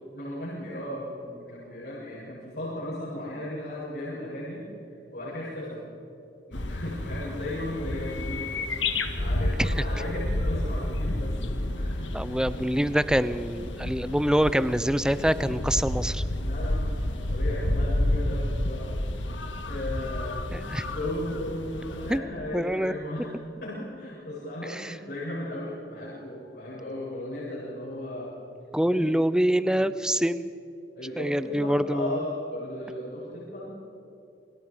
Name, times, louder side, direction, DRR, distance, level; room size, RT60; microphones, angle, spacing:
voice 1, 0.1-4.6 5.1-5.8 6.5-8.4 9.1-11.4 11.7-12.6 16.4-19.0 19.7-20.5 20.9-23.3 23.6-28.3 28.9-29.1 29.6-29.8 30.9-33.7, left 1 dB, 60° left, -9 dB, 7.9 m, -36 dB
sound 1, 6.5-22.2, left 1 dB, 90° left, 1.7 m, -30 dB
voice 2, 12.1-16.2 20.5-20.8 22.1-22.2 22.5-22.9 24.7-24.9 28.7-30.5 31.2-32.2, equal, 5° right, 14 dB, 0.5 m, -25 dB
29.0 x 25.0 x 5.1 m, 2.8 s
head